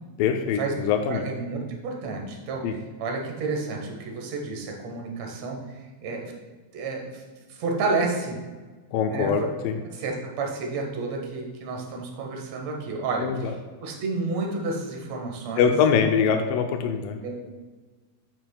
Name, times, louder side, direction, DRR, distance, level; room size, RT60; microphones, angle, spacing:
voice 1, 0.2-1.3 2.6-2.7 8.9-9.8 13.2-13.3 15.6-17.2, left 7 dB, 80° left, 4 dB, 2.1 m, -23 dB
voice 2, 1.1-6.3 6.7-7.2 7.5-8.4 9.1-9.4 9.9-15.7 17.1-17.4, right 3 dB, 65° right, 1 dB, 1.8 m, -31 dB
8.8 x 7.6 x 2.2 m, 1.3 s
omnidirectional pair, 4.2 m